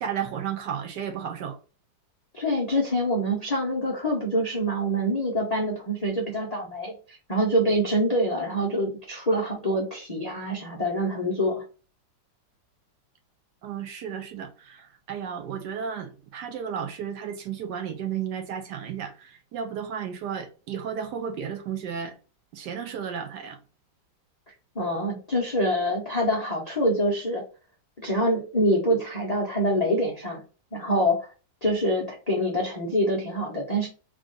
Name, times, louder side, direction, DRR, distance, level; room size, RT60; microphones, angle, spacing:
voice 1, 0.0-1.6 13.6-22.2 22.5-23.6, right 8 dB, 70° right, 1.2 m, -33 dB
voice 2, 2.3-11.6 24.7-27.4 28.0-30.4 30.7-31.3 31.6-33.9, equal, 45° left, 0.5 m, -25 dB
3.6 x 2.4 x 3.8 m
omnidirectional pair, 2.0 m